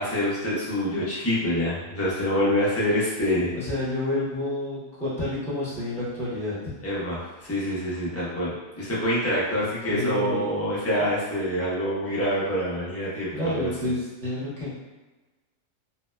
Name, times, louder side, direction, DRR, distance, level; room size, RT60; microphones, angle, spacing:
voice 1, 0.0-3.5 6.8-13.7, equal, 20° left, -8 dB, 0.4 m, -26 dB
voice 2, 3.5-6.5 9.9-10.7 13.3-14.7, left 1 dB, ahead, -11 dB, 0.7 m, -29 dB
2.8 x 2.0 x 2.2 m, 1.2 s
omnidirectional pair, 1.4 m